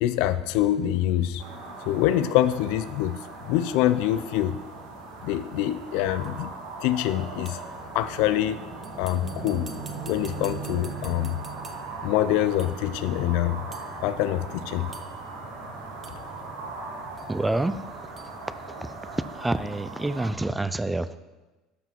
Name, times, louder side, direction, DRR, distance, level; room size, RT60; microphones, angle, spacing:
voice 1, 0.0-1.4 1.9-3.2 3.4-4.6 5.2-6.5 6.8-7.6 7.9-8.6 9.0-9.7 10.1-11.4 12.0-13.6 14.0-14.9, left 13 dB, 75° left, 13 dB, 0.5 m, -25 dB
sound 1, 1.4-20.3, right 3 dB, 85° right, 2.4 m, -39 dB
sound 2, 6.2-6.3 7.4-7.8 8.8-12.0 12.6-12.9 13.7-13.9 14.9-15.3 16.0-16.3 17.2-17.3 18.2-18.4, right 3 dB, 25° right, 1.3 m, -48 dB
voice 2, 17.3-17.8 18.8-18.9 19.3-21.2, right 2 dB, 10° right, 13 dB, 0.6 m, -27 dB
11.5 x 5.8 x 5.9 m, 1.1 s
supercardioid pair, 90°, 0 cm